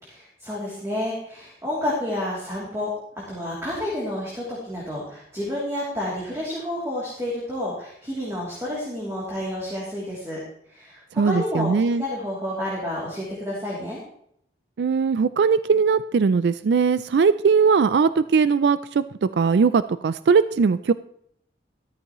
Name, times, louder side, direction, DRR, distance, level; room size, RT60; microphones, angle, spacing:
voice 1, 0.1-3.0 3.3-10.4 10.7-14.0, left 1 dB, 15° right, -6 dB, 2.9 m, -30 dB
voice 2, 11.2-12.0 14.8-20.9, right 5 dB, 70° right, 14 dB, 0.4 m, -20 dB
13.5 x 13.5 x 3.0 m, 0.70 s
head